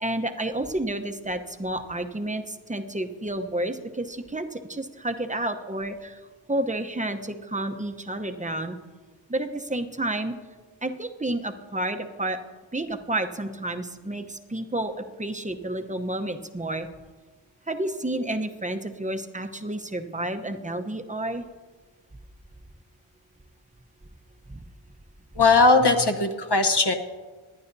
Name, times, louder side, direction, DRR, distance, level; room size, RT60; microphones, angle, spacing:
voice 1, 0.0-6.1 6.5-8.8 9.3-10.3 10.8-12.4 12.7-16.9 17.7-21.4 24.5-24.6, right 1 dB, 15° right, 6 dB, 0.8 m, -30 dB
voice 2, 25.4-26.9, left 3 dB, 50° left, 5 dB, 1.0 m, -19 dB
19.5 x 11.0 x 2.7 m, 1.4 s
wide cardioid pair, 40°, 50 cm